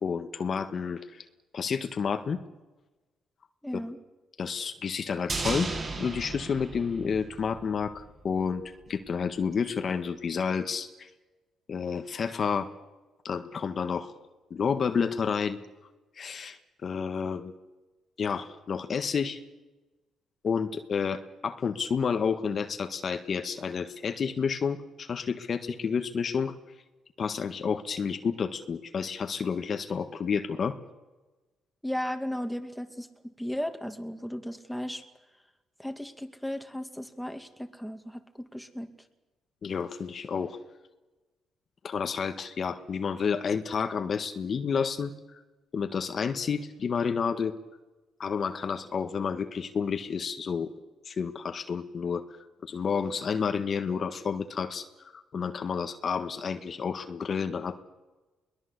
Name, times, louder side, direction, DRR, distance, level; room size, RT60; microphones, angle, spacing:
voice 1, 0.0-1.2 1.5-2.4 4.4-5.7 6.0-11.1 11.7-12.7 13.2-14.1 14.5-15.6 16.2-17.5 18.2-19.4 20.4-26.5 27.2-30.8 39.6-40.6 41.8-45.1 45.7-47.5 48.2-50.7 51.0-52.2 52.6-57.8, left 6 dB, 50° left, 8 dB, 1.6 m, -30 dB
voice 2, 3.6-4.0 31.8-33.1 33.4-35.0 35.8-38.9, equal, ahead, 6 dB, 2.4 m, -35 dB
sound 1, 5.3-7.7 8.0-8.1, right 3 dB, 40° right, 7.7 m, -34 dB
22.5 x 20.0 x 8.2 m, 1.1 s
cardioid pair, 90°, 0 cm